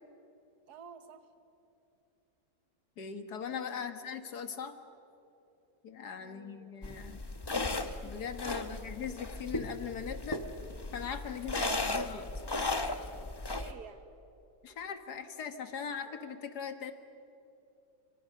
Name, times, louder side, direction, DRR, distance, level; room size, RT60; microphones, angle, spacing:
voice 1, 0.7-1.3 3.7-3.9 6.2-6.7 8.5-8.8 11.6-11.8 13.5-14.0, right 7 dB, 80° right, 9 dB, 1.7 m, -52 dB
voice 2, 3.0-4.8 5.8-7.2 7.8-10.4 10.9-12.3 14.6-16.9, left 7 dB, 90° left, 8 dB, 2.1 m, -40 dB
sound 1, 6.8-13.7, left 2 dB, 20° left, 0.9 m, -36 dB
29.0 x 26.0 x 6.5 m, 2.9 s
omnidirectional pair, 1.7 m